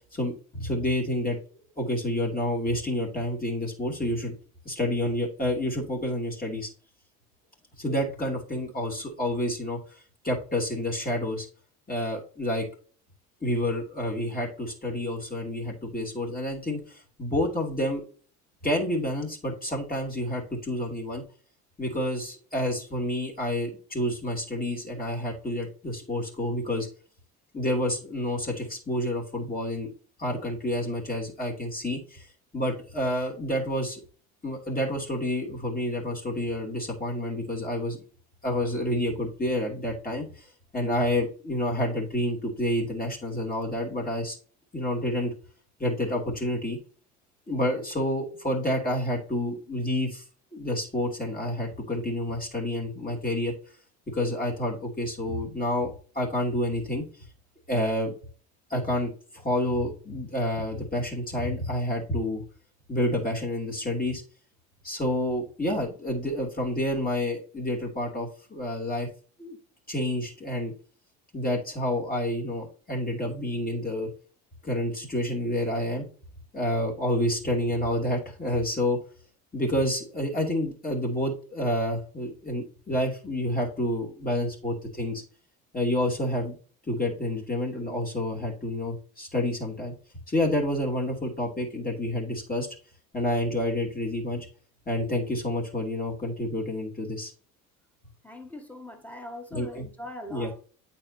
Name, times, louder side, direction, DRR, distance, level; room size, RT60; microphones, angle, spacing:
voice 1, 0.1-1.4 1.8-4.3 4.6-6.7 7.8-9.8 10.2-11.5 11.9-12.7 13.4-18.0 18.6-21.2 21.8-26.9 27.5-29.9 30.2-32.3 32.5-34.0 34.4-38.0 38.4-40.5 40.7-44.4 44.7-45.3 45.8-46.8 47.5-50.2 50.5-53.5 54.1-57.0 57.7-58.1 58.7-62.4 62.9-64.2 64.8-69.1 69.4-69.6 69.9-70.7 71.3-74.1 74.6-76.1 76.5-79.0 79.5-85.2 85.7-86.6 86.9-89.9 90.3-92.7 93.1-94.5 94.9-97.3 99.5-99.8 100.3-100.5, left 1 dB, 20° left, 2.8 m, -29 dB
voice 2, 98.2-100.7, left 1 dB, 5° left, 1.9 m, -41 dB
8.8 x 4.4 x 2.8 m
hypercardioid pair, 60°, 42 cm